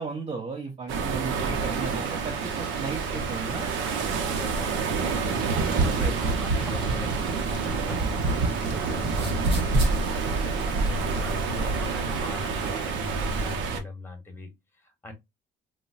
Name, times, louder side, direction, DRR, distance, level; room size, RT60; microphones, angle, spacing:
voice 1, 0.0-3.7 5.8-6.1, right 4 dB, 35° right, 0.8 m, -35 dB
sound 1, 0.9-13.8, right 5 dB, 85° right, 0.6 m, -28 dB
Frying (food), 1.5-13.5, right 1 dB, 5° right, 2.0 m, -44 dB
voice 2, 4.1-10.1 10.4-14.5 14.8-15.1, left 2 dB, 10° left, 1.2 m, -40 dB
sound 2, 5.4-8.7 9.0-10.0, right 2 dB, 60° right, 1.0 m, -27 dB
3.9 x 2.1 x 2.3 m
cardioid pair, 85°, 19 cm